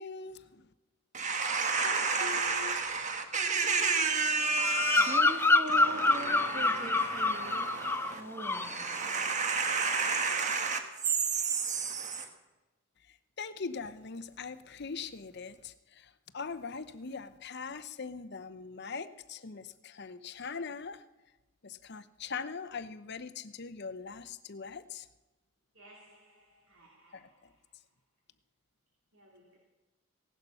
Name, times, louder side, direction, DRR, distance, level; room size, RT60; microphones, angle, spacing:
voice 1, 0.0-0.4 1.8-2.7 13.4-15.7 16.3-21.0 21.6-25.0 27.1-27.2, left 5 dB, 50° left, 0.8 m, -41 dB
voice 2, 1.2-10.8 11.0-12.3, right 4 dB, 35° right, 1.4 m, -31 dB
Bird vocalization bird call bird song, 4.6-8.1 8.4-8.8, left 2 dB, 10° left, 0.5 m, -27 dB
voice 3, 25.7-27.5 29.1-29.6, right 1 dB, 70° right, 2.7 m, -59 dB
17.0 x 11.0 x 5.7 m
head